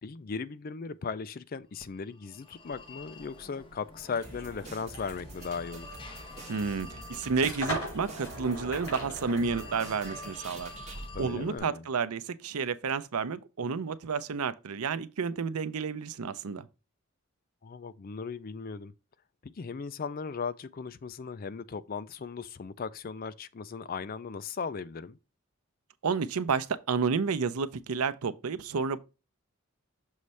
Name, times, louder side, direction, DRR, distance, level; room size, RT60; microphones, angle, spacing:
voice 1, 0.0-6.0 11.1-11.8 17.6-18.9 19.4-25.2, left 5 dB, 40° left, 0.4 m, -37 dB
Telephone, 1.8-11.6, left 1 dB, 25° left, 1.0 m, -47 dB
sound 1, 4.0-10.8, right 1 dB, 75° left, 3.5 m, -41 dB
sound 2, 4.2-11.1, right 2 dB, 30° right, 1.6 m, -47 dB
voice 2, 6.5-10.7 11.2-16.7 26.0-29.0, right 5 dB, 90° right, 0.6 m, -31 dB
6.5 x 3.1 x 5.5 m
head